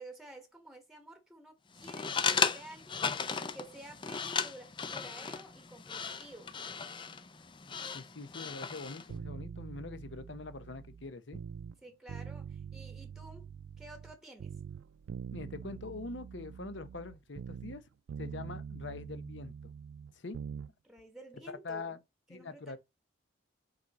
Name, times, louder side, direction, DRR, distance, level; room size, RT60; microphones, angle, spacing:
voice 1, 0.0-3.0 3.4-6.5 11.8-13.5 13.8-14.6 20.8-22.0 22.3-22.8, right 1 dB, ahead, 1.1 m, -51 dB
sound 1, 1.8-9.1, left 5 dB, 25° left, 0.4 m, -36 dB
voice 2, 7.9-11.4 15.3-17.8 18.2-19.7 20.1-20.4 21.6-22.0 22.3-22.8, left 3 dB, 60° left, 0.8 m, -43 dB
sound 2, 9.1-11.8 12.1-14.1 14.4-17.8 18.1-20.7 21.0-21.1, right 7 dB, 70° right, 0.3 m, -44 dB
5.1 x 4.7 x 4.0 m
head